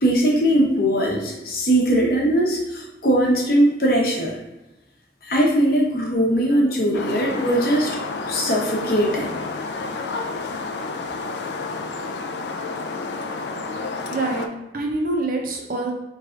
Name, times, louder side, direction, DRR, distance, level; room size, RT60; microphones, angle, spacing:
voice 1, 0.0-4.3 5.2-8.0 8.3-9.3, right 1 dB, 50° left, -1 dB, 0.8 m, -20 dB
sound 1, 6.9-14.5, left 3 dB, 65° left, 0.4 m, -30 dB
voice 2, 14.1-15.9, right 2 dB, 50° right, 1 dB, 0.6 m, -26 dB
4.4 x 3.2 x 2.5 m, 1.0 s
head